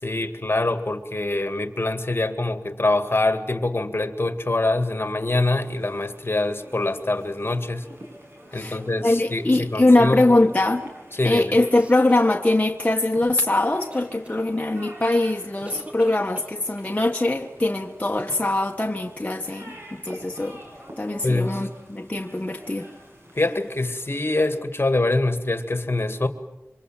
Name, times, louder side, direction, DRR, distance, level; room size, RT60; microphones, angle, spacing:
voice 1, 0.0-7.9 8.5-10.2 11.2-11.6 21.2-21.6 23.3-26.3, left 2 dB, 50° left, 8 dB, 2.1 m, -24 dB
sound 1, 5.5-24.6, equal, 50° right, 7.3 m, -47 dB
voice 2, 8.5-10.9 11.2-20.6 21.0-22.9, left 2 dB, 30° left, 1 dB, 1.5 m, -22 dB
sound 2, 11.7-13.0 13.9-14.4 15.6-16.9, equal, 25° right, 3.1 m, -43 dB
27.5 x 25.5 x 7.5 m, 0.96 s
wide cardioid pair, 60°, 5 cm